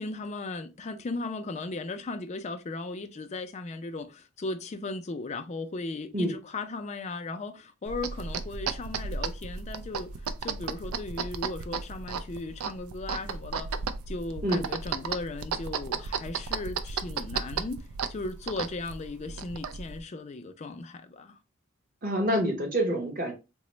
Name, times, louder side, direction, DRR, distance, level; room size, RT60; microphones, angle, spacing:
voice 1, 0.0-10.1 10.4-13.7 14.1-21.4, left 3 dB, 30° left, 0.3 m, -37 dB
sound 1, 7.9-20.0, right 5 dB, 90° right, 0.4 m, -35 dB
voice 2, 22.0-23.3, equal, 40° right, 1.0 m, -27 dB
3.8 x 2.0 x 3.1 m
head